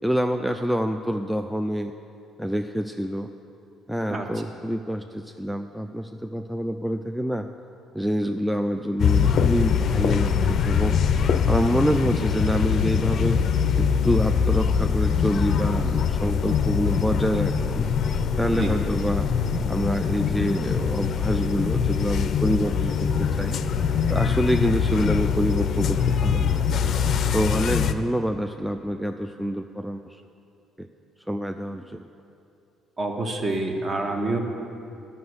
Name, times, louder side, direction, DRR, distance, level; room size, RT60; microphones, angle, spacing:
voice 1, 0.0-1.9 2.4-3.3 3.9-7.5 7.9-11.0 11.5-13.4 13.8-17.9 18.4-19.3 19.7-23.6 24.1-26.6 27.3-30.2 30.8-30.9 31.3-32.1, equal, ahead, 6 dB, 0.4 m, -26 dB
sound 1, 9.0-27.9, left 6 dB, 55° left, 0.5 m, -23 dB
voice 2, 33.0-34.4, right 2 dB, 35° right, 3 dB, 1.3 m, -27 dB
11.0 x 5.6 x 7.9 m, 2.7 s
cardioid pair, 90°, 0 cm